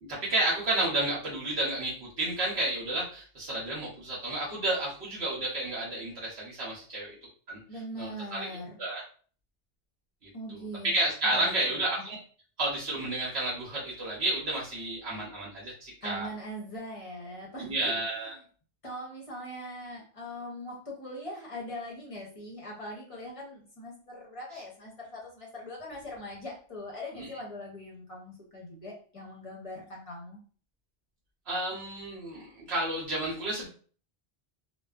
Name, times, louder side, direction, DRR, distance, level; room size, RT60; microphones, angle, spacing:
voice 1, 0.0-7.1 7.5-7.6 8.0-9.0 10.5-12.2 12.6-16.3 17.6-18.3 27.2-27.3 31.5-33.7, right 2 dB, 75° right, -5 dB, 1.0 m, -31 dB
voice 2, 7.7-8.8 10.3-10.9 11.2-12.0 16.0-17.9 18.8-30.4, equal, 35° left, -3 dB, 0.6 m, -41 dB
2.5 x 2.2 x 2.3 m, 0.43 s
omnidirectional pair, 1.1 m